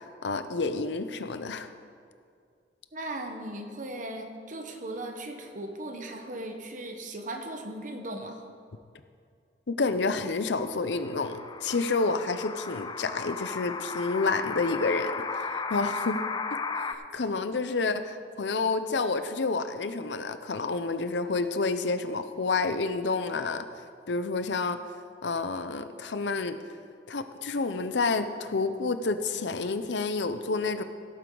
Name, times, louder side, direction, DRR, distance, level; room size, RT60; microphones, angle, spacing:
voice 1, 0.2-1.7 9.7-16.2 16.7-23.6 24.1-24.8 25.2-26.6 27.1-30.8, left 3 dB, 80° left, 10 dB, 0.7 m, -29 dB
voice 2, 2.9-8.4, right 1 dB, 45° right, 4 dB, 1.1 m, -38 dB
sound 1, 10.9-16.9, left 4 dB, 25° left, 0.5 m, -35 dB
17.0 x 8.2 x 3.9 m, 2.3 s
head